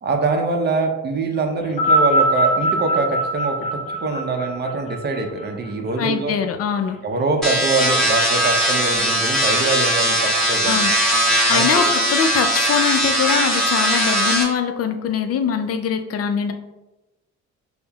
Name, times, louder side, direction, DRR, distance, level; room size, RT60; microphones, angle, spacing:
voice 1, 0.0-3.6 4.0-6.4 7.0-10.8 11.5-11.9, right 3 dB, 35° right, 3 dB, 0.6 m, -23 dB
sound 1, 1.7-6.2 7.1-7.2, right 1 dB, 25° left, 1.0 m, -21 dB
voice 2, 6.0-7.0 10.6-10.9 11.5-16.5, left 7 dB, 50° left, 7 dB, 0.4 m, -22 dB
sound 2, 7.4-14.4, right 1 dB, ahead, 1.2 m, -19 dB
5.4 x 2.1 x 2.3 m, 1.0 s
cardioid pair, 90°, 30 cm